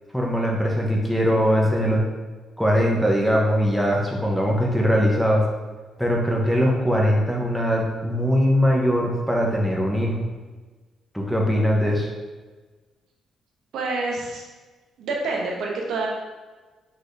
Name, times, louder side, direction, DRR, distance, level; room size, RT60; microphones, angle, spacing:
voice 1, 0.1-2.0 2.6-5.4 6.0-10.2 11.1-12.1, equal, ahead, -2 dB, 0.9 m, -21 dB
voice 2, 13.7-14.4 15.0-16.1, right 3 dB, 75° right, -1 dB, 0.9 m, -27 dB
4.8 x 4.1 x 2.7 m, 1.3 s
cardioid pair, 90°, 0 cm